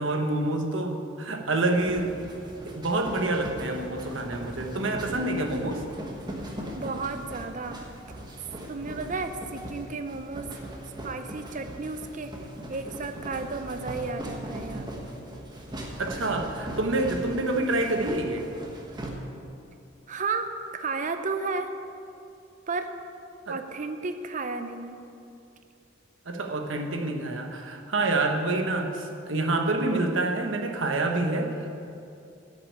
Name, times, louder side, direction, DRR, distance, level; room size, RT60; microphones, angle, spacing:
voice 1, 0.0-2.1 2.6-5.8 16.0-18.5 23.5-23.6 26.2-31.8, right 2 dB, 75° right, 3 dB, 1.2 m, -27 dB
sound 1, 1.6-19.1, right 1 dB, 20° right, 1.3 m, -39 dB
voice 2, 6.7-7.8 8.7-10.5 11.0-12.3 12.7-14.9 20.1-21.7 22.7-22.9 23.5-25.0, right 4 dB, 40° right, 8 dB, 0.6 m, -33 dB
9.7 x 6.8 x 8.5 m, 2.6 s
head